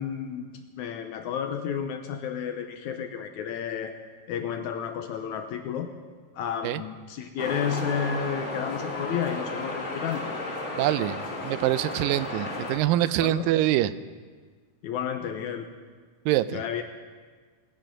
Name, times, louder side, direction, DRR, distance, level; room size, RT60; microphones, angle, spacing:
voice 1, 0.0-3.9 4.3-5.9 6.4-10.3 13.2-13.5 14.8-15.7 16.5-16.8, left 8 dB, 75° left, 6 dB, 1.9 m, -31 dB
sound 1, 7.4-12.8, left 2 dB, 25° left, 1.7 m, -33 dB
voice 2, 10.8-13.9 16.3-16.6, right 14 dB, 85° right, 15 dB, 2.2 m, -25 dB
19.5 x 9.2 x 5.9 m, 1.5 s
omnidirectional pair, 3.9 m